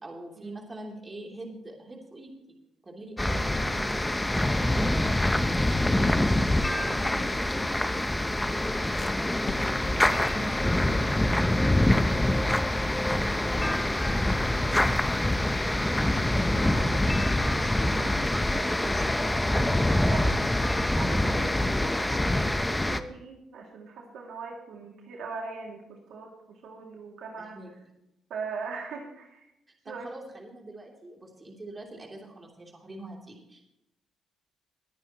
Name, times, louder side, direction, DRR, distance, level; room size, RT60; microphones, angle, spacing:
voice 1, 0.0-2.3 2.8-3.9 4.2-4.9 5.2-6.3 6.7-8.2 8.5-9.1 9.4-9.8 10.1-12.3 13.0-14.9 27.4-27.7 29.8-33.6, right 2 dB, 25° right, 0 dB, 3.1 m, -44 dB
voice 2, 3.0-3.4 15.7-19.0 19.5-20.7 21.0-27.6 28.3-29.5 29.9-30.1, right 4 dB, 80° right, 0 dB, 2.3 m, -41 dB
sound 1, 3.2-23.0, left 1 dB, 10° left, 0.7 m, -25 dB
sound 2, 3.9-10.3, left 4 dB, 35° left, 0.9 m, -45 dB
21.0 x 9.4 x 3.0 m, 0.86 s
cardioid pair, 90°, 0 cm